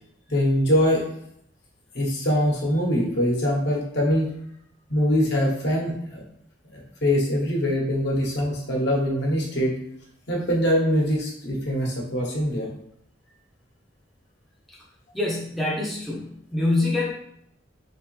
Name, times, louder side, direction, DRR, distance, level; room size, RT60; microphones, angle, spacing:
voice 1, 0.3-1.0 1.9-4.3 4.9-6.2 6.7-9.8 10.3-12.7, equal, 60° left, -2 dB, 1.0 m, -23 dB
voice 2, 15.1-17.1, left 2 dB, ahead, -5 dB, 0.5 m, -25 dB
3.4 x 3.3 x 3.1 m, 0.72 s
head